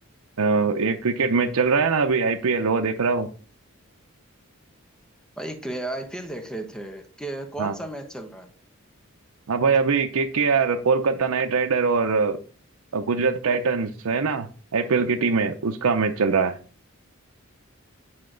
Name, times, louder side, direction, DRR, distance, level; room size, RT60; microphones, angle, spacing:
voice 1, 0.4-3.3 7.6-7.7 9.5-12.4 12.9-14.5 14.7-16.6, right 4 dB, 85° right, 0.6 m, -22 dB
voice 2, 5.4-8.5, right 1 dB, 5° left, 1.0 m, -34 dB
9.6 x 5.8 x 3.9 m
head